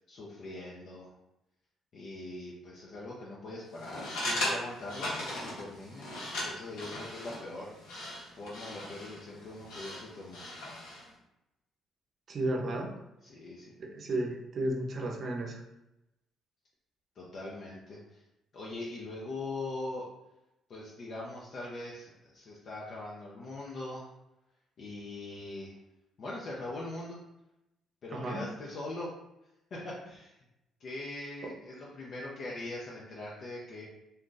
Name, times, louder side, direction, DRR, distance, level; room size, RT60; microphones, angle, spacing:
voice 1, 0.1-1.1 1.9-6.1 6.4-7.7 8.4-10.5 13.2-13.7 17.2-18.2 18.5-20.0 20.7-24.1 24.8-25.8 26.2-27.2 28.0-29.1 29.7-30.3 30.8-33.8, left 2 dB, 60° left, -5 dB, 0.6 m, -41 dB
sound 1, 3.8-11.1, left 1 dB, 85° left, 1.1 m, -38 dB
voice 2, 12.3-12.9 13.8-15.6 28.1-28.4 31.4-31.5, right 1 dB, 50° right, 1 dB, 0.7 m, -33 dB
2.6 x 2.4 x 3.8 m, 0.90 s
supercardioid pair, 55°, 0 cm